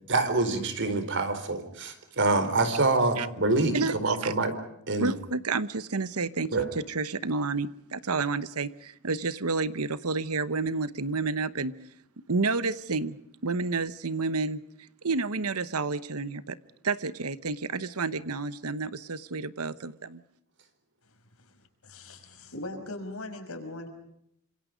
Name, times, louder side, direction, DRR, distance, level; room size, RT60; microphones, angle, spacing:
voice 1, 0.1-4.5 4.9-5.1 6.5-6.7, right 3 dB, 55° right, 9 dB, 4.2 m, -26 dB
voice 2, 3.7-4.3 5.0-11.7 12.3-14.6 15.0-16.6 16.8-20.2, right 4 dB, 75° right, 15 dB, 1.1 m, -30 dB
voice 3, 21.1-23.9, left 2 dB, 70° left, 6 dB, 5.5 m, -40 dB
28.5 x 26.5 x 5.2 m, 0.74 s
head